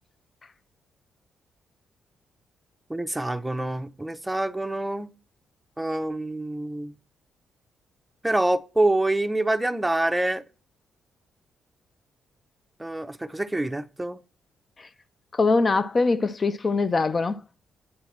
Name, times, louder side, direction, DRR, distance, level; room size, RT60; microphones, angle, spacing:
voice 1, 2.9-5.1 5.8-6.9 8.2-10.4 12.8-14.2, right 1 dB, 10° right, 0.5 m, -26 dB
voice 2, 15.3-17.4, left 3 dB, 40° left, 0.3 m, -22 dB
8.5 x 2.9 x 5.9 m
supercardioid pair, 60°, 0 cm